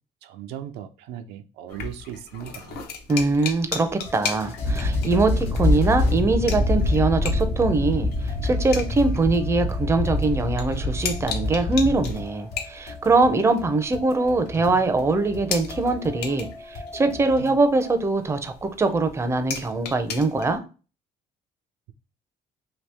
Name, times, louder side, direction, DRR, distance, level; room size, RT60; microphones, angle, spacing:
voice 1, 0.2-2.9, right 10 dB, 85° right, 0.4 m, -38 dB
sound 1, 1.7-20.6, left 5 dB, 70° left, 0.7 m, -37 dB
voice 2, 3.1-20.6, right 3 dB, 15° right, 0.4 m, -22 dB
sound 2, 4.0-18.0, left 2 dB, 90° left, 1.2 m, -40 dB
sound 3, 4.6-12.2, left 2 dB, 45° left, 1.0 m, -25 dB
2.9 x 2.7 x 3.3 m
cardioid pair, 110°, 17 cm